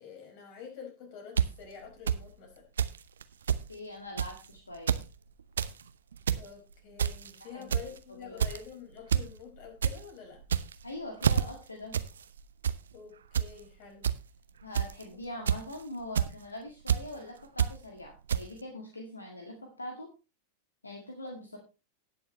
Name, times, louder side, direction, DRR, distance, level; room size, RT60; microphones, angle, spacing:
voice 1, 0.0-2.7 6.3-10.4 12.9-14.0, left 6 dB, 45° left, 2 dB, 5.0 m, -47 dB
sound 1, 1.4-1.5 2.1-2.2 2.8-3.0 3.2-3.3 3.5-3.6 4.2-4.4 4.7-5.0 5.4-5.7 6.1-6.4 7.0-7.3 7.7-8.0 8.4-8.7 9.1-9.3 9.6-9.9 10.4-10.8 11.2-11.4 11.9-12.1 12.4-12.8 13.3-13.5 14.0-14.1 14.7-15.0 15.5-15.7 16.2-16.3 16.9-17.0 17.6-17.7 18.3-18.4, right 8 dB, 65° right, 0.7 m, -27 dB
voice 2, 3.7-5.0 7.4-7.7 8.2-8.4 10.8-12.0 14.6-20.1 20.8-21.6, left 1 dB, 80° left, 2 dB, 1.9 m, -43 dB
18.0 x 6.9 x 3.1 m, 0.29 s
figure-of-eight pair, 90°, 0 cm